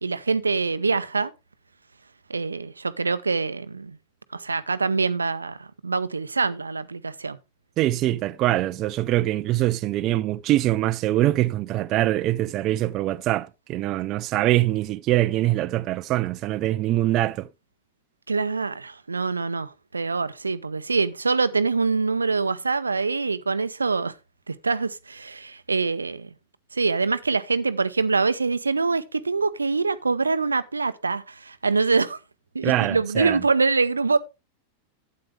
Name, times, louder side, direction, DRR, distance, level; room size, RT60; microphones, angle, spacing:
voice 1, 0.0-1.3 2.3-4.0 4.3-7.4 18.3-24.1 24.5-26.3 26.7-32.2 32.5-34.2, right 4 dB, 80° right, 0.6 m, -24 dB
voice 2, 7.8-17.5 32.6-33.4, right 15 dB, 35° right, 0.5 m, -23 dB
12.0 x 8.7 x 3.2 m
figure-of-eight pair, 90°, 0 cm